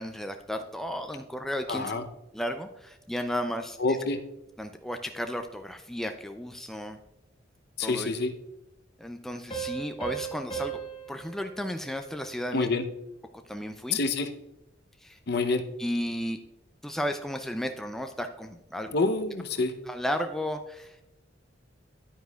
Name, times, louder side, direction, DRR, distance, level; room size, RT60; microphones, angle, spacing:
voice 1, 0.0-2.0 2.3-3.8 4.6-7.0 7.8-8.1 9.0-10.8 11.1-12.7 13.5-14.0 15.0-15.2 15.8-16.4 16.8-18.9 19.9-21.0, equal, ahead, 6 dB, 0.4 m, -33 dB
voice 2, 1.7-2.0 3.8-4.2 7.8-8.3 12.5-12.8 13.9-14.3 15.3-15.6 18.9-19.7, left 3 dB, 55° left, 8 dB, 0.7 m, -27 dB
Piano, 9.5-12.8, right 8 dB, 30° left, 1.1 m, -38 dB
10.0 x 9.3 x 2.3 m, 0.92 s
head